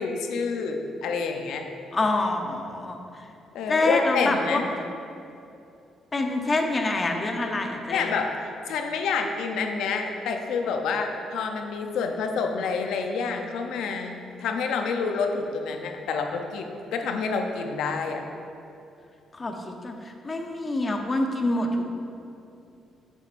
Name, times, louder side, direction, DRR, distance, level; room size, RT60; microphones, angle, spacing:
voice 1, 0.0-1.6 3.5-4.7 7.9-18.2, left 5 dB, 85° left, 4 dB, 0.6 m, -28 dB
voice 2, 1.9-3.0 3.7-4.6 6.1-8.1 19.3-21.7, left 2 dB, 30° left, 3 dB, 0.8 m, -26 dB
8.3 x 7.2 x 2.6 m, 2.7 s
cardioid pair, 90°, 0 cm